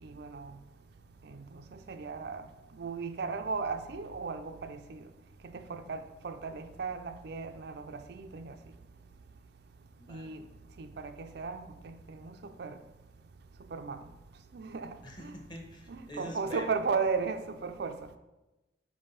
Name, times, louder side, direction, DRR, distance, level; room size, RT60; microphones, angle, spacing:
voice 1, 0.0-0.5 1.2-2.4 2.7-5.0 5.4-8.5 10.1-10.4 10.8-12.8 13.7-14.0 14.5-15.3 15.9-18.0, right 5 dB, 60° right, 0.4 m, -36 dB
voice 2, 10.0-10.4 15.0-16.7, equal, 25° left, 1.0 m, -45 dB
5.3 x 4.9 x 5.6 m
head